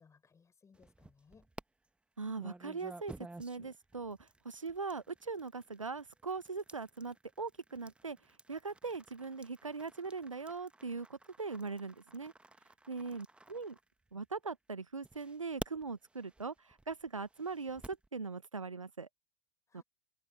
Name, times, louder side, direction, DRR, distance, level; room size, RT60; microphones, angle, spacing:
voice 1, 0.0-1.5 12.9-13.1 19.7-19.8, left 5 dB, 20° left, 6.4 m, -64 dB
sound 1, 0.7-1.6 2.4-14.4 15.0-18.1, right 2 dB, 5° right, 1.5 m, -52 dB
voice 2, 2.2-3.1 3.4-8.2 8.5-12.3 12.9-13.8 14.1-19.1 19.7-19.8, right 4 dB, 80° right, 1.2 m, -41 dB
figure-of-eight pair, 85°, 16 cm